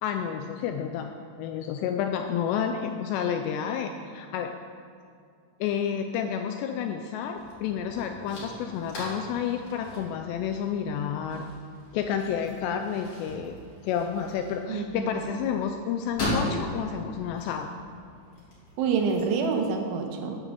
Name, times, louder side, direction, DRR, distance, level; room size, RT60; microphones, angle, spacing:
voice 1, 0.0-4.5 5.6-11.5 11.9-13.6 13.8-17.7, left 8 dB, 85° left, 5 dB, 2.5 m, -30 dB
sound 1, 7.3-19.7, left 1 dB, 35° left, 2.9 m, -38 dB
voice 2, 14.7-15.2 18.8-20.4, right 5 dB, 85° right, 3 dB, 3.5 m, -27 dB
9.2 x 8.6 x 6.9 m, 2.3 s
omnidirectional pair, 5.4 m